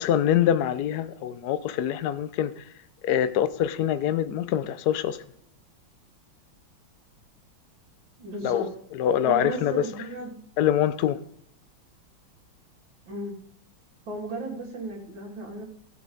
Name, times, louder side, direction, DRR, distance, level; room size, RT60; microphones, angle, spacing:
voice 1, 0.0-2.5 3.0-5.2 8.4-8.7 8.9-9.9 10.6-11.2, left 10 dB, 65° left, 1.0 m, -24 dB
voice 2, 8.2-8.7 9.2-10.3 13.1-13.4 14.1-15.6, right 2 dB, 65° right, 3.3 m, -34 dB
16.5 x 7.6 x 3.9 m
omnidirectional pair, 2.3 m